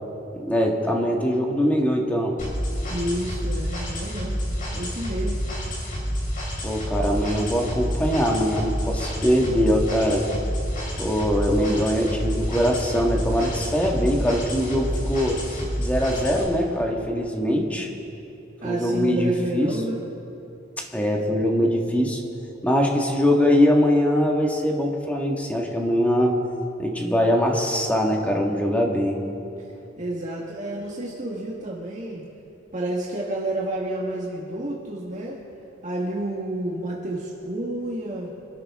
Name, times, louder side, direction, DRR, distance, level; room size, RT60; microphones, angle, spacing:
voice 1, 0.3-2.4 6.6-10.2 11.0-17.9 18.6-19.7 20.9-22.2 22.6-26.4 26.8-29.2, equal, 10° left, 0 dB, 1.7 m, -22 dB
sound 1, 2.4-16.4, equal, 45° left, 4.4 m, -29 dB
voice 2, 2.9-4.4 4.7-5.4 18.6-20.0 29.6-29.7 30.0-32.2 32.7-35.4 35.8-38.3, right 1 dB, 40° right, -4 dB, 1.6 m, -30 dB
26.0 x 12.0 x 3.7 m, 2.8 s
head